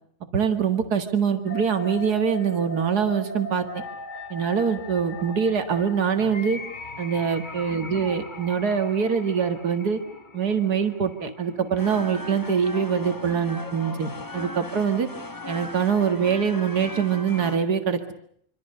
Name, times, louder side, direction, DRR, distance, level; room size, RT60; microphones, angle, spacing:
voice 1, 0.3-3.8 4.3-6.6 7.0-10.0 10.3-15.1 15.5-18.2, right 7 dB, 80° right, 7 dB, 2.4 m, -24 dB
sound 1, 1.4-15.4, left 2 dB, 30° left, 1.6 m, -40 dB
sound 2, 11.8-17.6, left 2 dB, 15° left, 0.9 m, -38 dB
26.5 x 26.0 x 6.7 m, 0.67 s
omnidirectional pair, 1.7 m